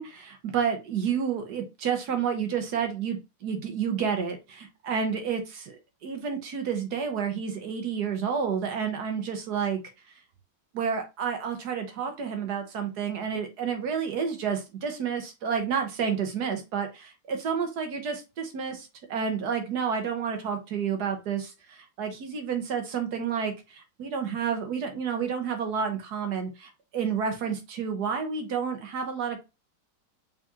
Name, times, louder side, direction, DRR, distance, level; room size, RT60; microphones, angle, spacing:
voice 1, 0.0-9.8 10.7-29.4, right 7 dB, 65° right, 5 dB, 1.4 m, -30 dB
4.0 x 3.6 x 2.8 m, 0.25 s
omnidirectional pair, 1.9 m